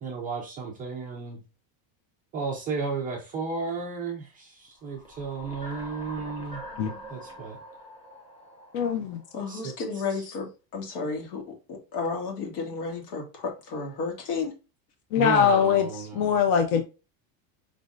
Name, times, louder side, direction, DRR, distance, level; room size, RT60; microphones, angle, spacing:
voice 1, 0.0-1.4 2.3-6.7 7.1-7.6 9.5-9.7 10.1-10.3 15.1-16.4, right 4 dB, 20° right, 0.3 m, -33 dB
sound 1, 4.8-9.5, equal, 10° left, 0.9 m, -44 dB
voice 2, 8.7-9.2 15.1-15.9 16.1-16.8, left 7 dB, 45° left, 0.6 m, -22 dB
voice 3, 9.3-14.5, left 4 dB, 75° left, 2.2 m, -32 dB
5.1 x 3.5 x 2.5 m
cardioid pair, 170°, 48 cm